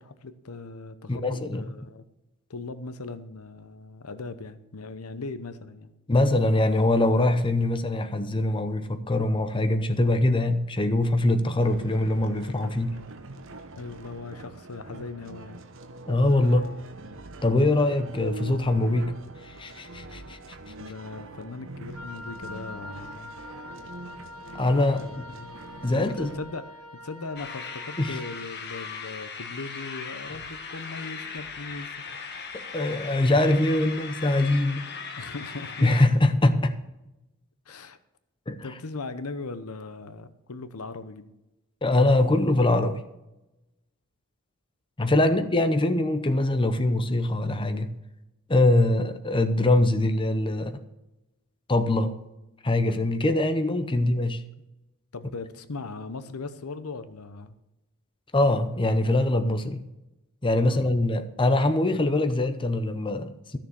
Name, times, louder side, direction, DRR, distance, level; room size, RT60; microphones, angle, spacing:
voice 1, 0.0-2.0 2.5-5.9 13.8-15.6 20.8-23.4 24.9-25.6 25.9-31.9 35.2-35.9 37.7-38.0 38.6-41.3 45.1-45.5 55.1-57.6 60.6-60.9, left 3 dB, 85° left, 0.9 m, -39 dB
voice 2, 1.1-1.6 6.1-13.0 16.1-16.8 17.4-19.1 19.4-20.4 24.5-25.3 25.8-26.3 28.0-28.2 32.5-34.8 35.8-36.8 38.5-38.7 41.8-43.0 45.0-48.0 48.5-50.8 51.7-52.2 52.6-54.4 58.3-59.8 60.4-63.6, left 2 dB, 25° left, 0.8 m, -23 dB
sound 1, 11.6-26.4, right 2 dB, 60° right, 1.1 m, -43 dB
Wind instrument woodwind instrument, 21.9-28.5, left 2 dB, 85° right, 1.4 m, -44 dB
sound 2, 27.4-36.0, left 5 dB, 50° left, 1.5 m, -38 dB
13.5 x 6.8 x 7.1 m
head